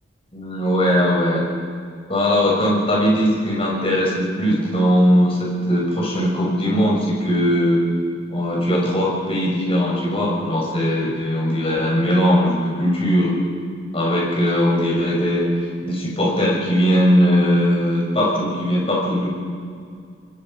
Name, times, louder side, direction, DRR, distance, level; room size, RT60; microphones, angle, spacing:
voice 1, 0.3-1.4 2.1-7.8 8.3-13.3 13.9-15.4 15.8-19.3, equal, 30° left, -2 dB, 6.3 m, -19 dB
27.5 x 22.0 x 5.6 m, 2.2 s
head